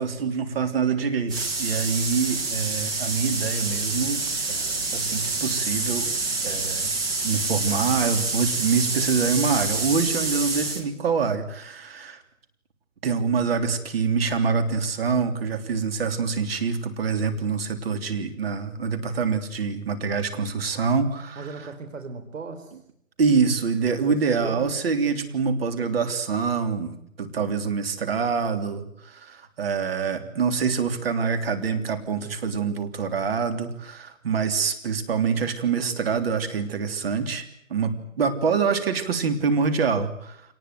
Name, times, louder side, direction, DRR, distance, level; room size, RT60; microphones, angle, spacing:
voice 1, 0.0-6.1 6.4-6.9 7.2-12.2 13.0-21.5 23.2-37.4 37.7-40.4, right 5 dB, 45° right, 8 dB, 3.3 m, -25 dB
sound 1, 1.3-10.8, right 3 dB, 10° right, 1.4 m, -27 dB
voice 2, 21.4-22.7 23.9-24.7 30.2-30.4, right 4 dB, 65° right, 6 dB, 4.1 m, -37 dB
26.5 x 19.5 x 9.3 m, 0.72 s
hypercardioid pair, 165°, 42 cm